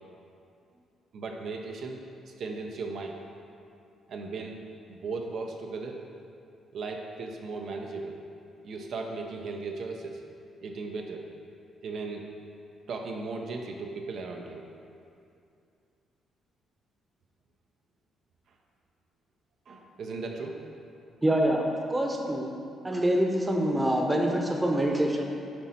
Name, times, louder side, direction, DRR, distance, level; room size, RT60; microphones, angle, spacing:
voice 1, 1.1-3.2 4.1-6.1 6.7-8.2 8.5-10.2 10.6-11.3 11.8-12.3 12.9-14.7 19.7-20.6, right 3 dB, 65° right, 2 dB, 0.5 m, -37 dB
voice 2, 21.2-22.5 22.8-25.2, right 1 dB, 15° right, 1 dB, 0.8 m, -25 dB
7.7 x 4.1 x 4.3 m, 2.5 s
cardioid pair, 90°, 0 cm